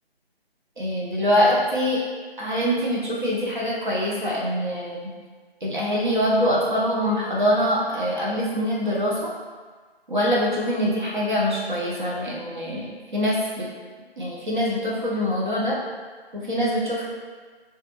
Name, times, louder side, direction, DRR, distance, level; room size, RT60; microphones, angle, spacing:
voice 1, 0.8-2.0 2.4-5.1 5.6-9.3 10.1-12.9 13.1-13.7 14.2-15.8 16.3-17.0, equal, 50° right, -5 dB, 0.6 m, -24 dB
3.3 x 2.3 x 2.8 m, 1.5 s
figure-of-eight pair, 165°, 31 cm